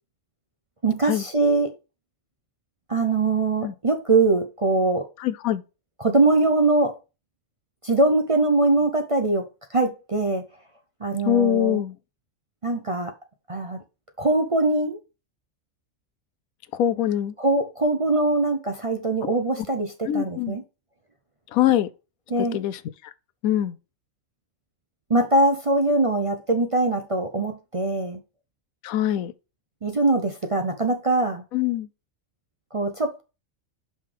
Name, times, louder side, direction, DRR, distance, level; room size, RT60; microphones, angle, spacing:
voice 1, 0.8-1.7 2.9-5.1 6.0-7.0 7.8-9.5 9.7-10.4 11.0-11.8 12.6-13.1 13.5-13.8 14.2-15.0 17.4-20.6 22.3-22.6 25.1-28.2 29.8-31.4 32.7-33.2, right 2 dB, 35° right, 0.6 m, -22 dB
voice 2, 5.2-5.6 11.2-11.9 16.7-17.3 20.0-20.6 21.5-21.9 22.5-23.1 23.4-23.8 28.8-29.3 31.5-31.9, left 11 dB, 85° left, 1.1 m, -23 dB
5.5 x 5.1 x 5.0 m
omnidirectional pair, 1.4 m